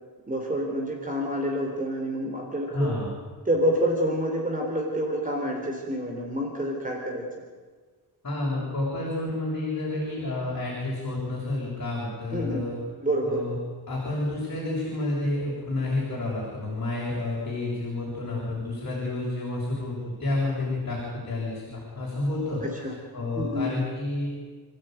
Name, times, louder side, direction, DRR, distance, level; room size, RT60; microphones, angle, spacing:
voice 1, 0.3-3.0 3.5-7.3 12.3-12.6 13.0-13.4 22.6-22.9 23.4-23.7, equal, 20° right, 0 dB, 3.8 m, -28 dB
voice 2, 2.7-3.1 8.2-12.8 13.2-13.5 13.9-24.3, left 2 dB, 45° left, -5 dB, 7.2 m, -30 dB
29.5 x 15.5 x 9.3 m, 1.5 s
wide cardioid pair, 175°, 42 cm